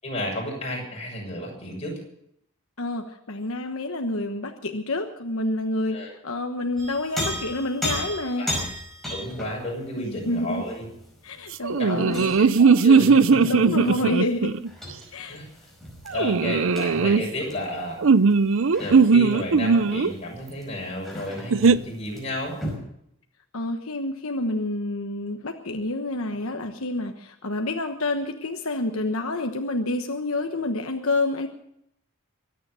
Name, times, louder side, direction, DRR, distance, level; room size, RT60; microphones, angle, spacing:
voice 1, 0.0-2.0 5.9-6.1 8.3-8.6 9.1-10.9 11.8-14.0 15.3-15.5 16.1-18.0 18.8-22.6, left 1 dB, 30° left, -2 dB, 6.9 m, -32 dB
voice 2, 2.8-8.5 10.0-10.6 11.2-12.3 13.5-14.6 15.1-15.4 23.5-31.5, left 2 dB, 75° left, 5 dB, 1.2 m, -28 dB
sound 1, 6.8-12.6 12.9-22.8, equal, ahead, 5.0 m, -36 dB
sound 2, 11.6-14.7 16.1-17.2 18.0-20.1 21.5-21.8, right 5 dB, 65° right, 0.5 m, -18 dB
23.5 x 9.5 x 6.4 m, 0.75 s
head